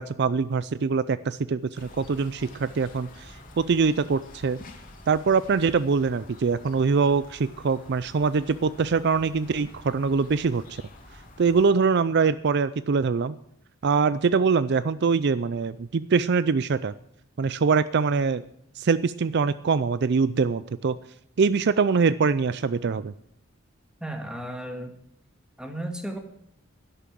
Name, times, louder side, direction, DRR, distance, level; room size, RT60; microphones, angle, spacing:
voice 1, 0.0-4.6 5.1-10.8 11.4-13.4 13.8-16.9 17.4-18.4 18.8-21.0 21.4-23.1, right 5 dB, 55° right, 16 dB, 0.4 m, -23 dB
sound 1, 1.7-11.7, left 2 dB, 40° left, 2.6 m, -48 dB
voice 2, 24.0-25.0 25.6-26.2, right 1 dB, 5° right, 5 dB, 1.9 m, -34 dB
12.0 x 11.0 x 7.6 m, 0.73 s
head